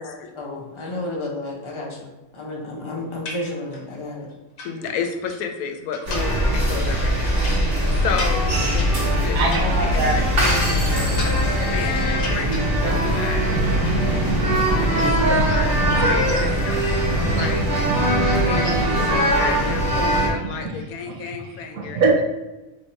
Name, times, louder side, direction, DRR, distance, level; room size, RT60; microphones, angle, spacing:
voice 1, 0.4-2.1 2.3-4.3, left 1 dB, 25° left, -2 dB, 0.8 m, -31 dB
sound 1, 3.3-4.0 4.3-5.4 5.9-6.6 6.9-10.4 10.7-11.8 12.1-13.1 13.4-14.0, left 3 dB, 65° left, 1.1 m, -37 dB
voice 2, 4.6-8.9 9.2-10.8 11.6-13.9 15.0-16.8 17.3-17.7 18.4-22.0, left 6 dB, 85° left, 5 dB, 1.1 m, -32 dB
sound 2, 6.1-20.3, equal, 60° right, 1.5 m, -21 dB
voice 3, 9.3-11.8 12.3-13.1 13.4-15.5 15.8-16.3 17.1-17.5 17.9-19.3 20.1-20.5 21.1-21.2 21.4-22.2, right 3 dB, 85° right, -1 dB, 1.3 m, -26 dB
3.8 x 2.7 x 4.4 m, 1.1 s
omnidirectional pair, 1.5 m